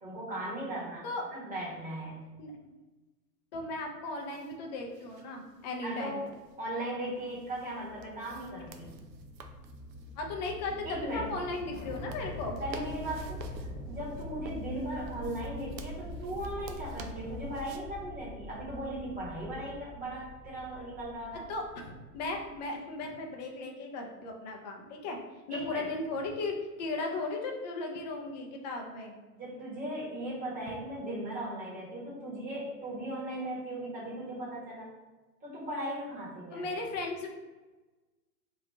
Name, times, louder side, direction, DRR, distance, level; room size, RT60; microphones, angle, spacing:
voice 1, 0.0-2.2 5.8-6.3 6.6-8.9 10.8-11.3 12.6-21.4 25.5-25.9 29.3-34.9 35.4-36.8, right 1 dB, 15° right, -5 dB, 1.1 m, -38 dB
voice 2, 3.5-6.2 8.8-8.9 10.2-12.6 21.5-25.2 25.5-29.1 36.5-37.3, left 2 dB, 30° left, 1 dB, 0.4 m, -36 dB
sound 1, 4.1-17.8, right 5 dB, 85° right, 0.6 m, -53 dB
sound 2, 6.3-6.4 7.1-17.7, left 2 dB, 55° left, 1.1 m, -45 dB
sound 3, 11.6-22.7, left 1 dB, 5° left, 1.0 m, -45 dB
3.0 x 2.3 x 3.4 m, 1.2 s
hypercardioid pair, 115°, 49 cm